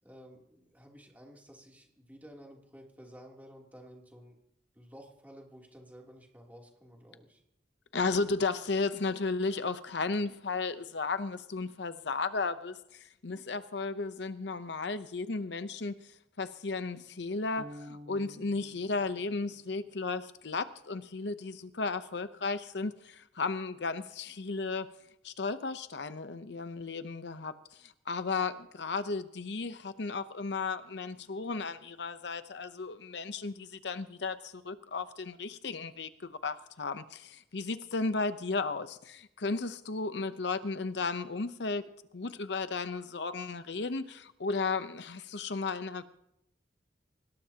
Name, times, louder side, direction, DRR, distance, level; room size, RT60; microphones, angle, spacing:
voice 1, 0.0-4.3 4.7-7.4, equal, 10° right, -1 dB, 3.0 m, -53 dB
voice 2, 7.9-16.0 16.4-24.9 25.2-46.0, left 4 dB, 70° left, 11 dB, 0.8 m, -34 dB
sound 1, 17.6-19.9, left 1 dB, 35° right, 0.8 m, -50 dB
25.0 x 19.5 x 2.9 m, 0.79 s
head